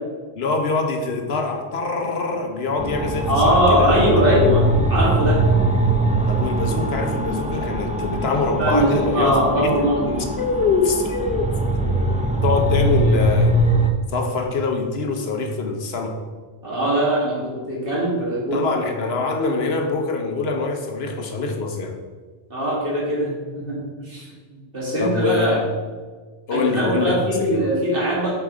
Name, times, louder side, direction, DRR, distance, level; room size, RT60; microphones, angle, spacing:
voice 1, 0.4-4.1 6.3-9.7 10.4-11.5 11.7-12.1 12.4-13.5 14.1-16.2 18.5-22.0 25.0-25.6 26.5-27.6, left 4 dB, 70° left, 4 dB, 1.1 m, -24 dB
sound 1, 2.8-13.9, right 1 dB, 10° right, 0.4 m, -21 dB
voice 2, 3.3-5.4 8.6-10.2 16.6-18.7 22.5-24.2 24.5-25.6 26.5-28.3, equal, 60° right, -5 dB, 2.4 m, -21 dB
7.4 x 4.7 x 4.9 m, 1.4 s
omnidirectional pair, 1.1 m